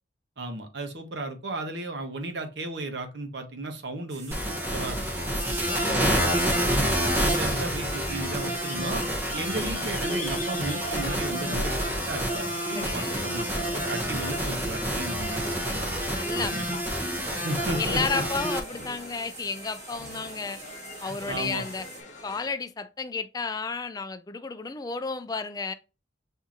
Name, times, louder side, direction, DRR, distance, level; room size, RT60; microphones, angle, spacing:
voice 1, 0.4-5.0 5.4-6.1 6.7-9.0 9.3-15.9 16.4-16.7 17.4-18.2 21.0-21.6, right 2 dB, 65° right, 0.8 m, -35 dB
sound 1, 4.1-22.0, right 3 dB, 40° right, 1.4 m, -46 dB
sound 2, 4.3-18.6, equal, 10° right, 0.7 m, -28 dB
voice 2, 5.6-6.1 6.5-6.8 12.7-13.3 16.1-16.8 17.8-20.6 21.0-21.9 22.2-25.7, left 4 dB, 20° left, 0.3 m, -32 dB
sound 3, 7.4-22.5, left 2 dB, 40° left, 0.8 m, -42 dB
7.2 x 2.7 x 2.4 m
head